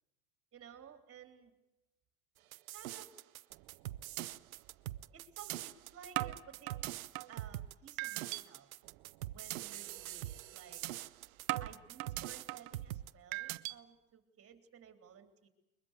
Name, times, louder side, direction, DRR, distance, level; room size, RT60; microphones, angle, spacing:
voice 1, 0.5-1.5 2.7-3.2 5.1-7.0 7.3-8.7 9.3-10.8 11.6-15.5, right 7 dB, 35° right, 8 dB, 3.5 m, -56 dB
sound 1, 2.5-13.1, right 14 dB, 90° right, 0.7 m, -44 dB
sound 2, 3.5-3.8 4.2-4.3 4.7-4.8 5.5-5.6 6.2-7.4 8.0-8.4 8.8-9.1 9.5-9.6 10.0-10.2 10.8-10.9 11.5-12.8 13.3-13.7, right 21 dB, 60° right, 1.0 m, -39 dB
22.0 x 21.5 x 8.1 m, 0.98 s
hypercardioid pair, 95°, 41 cm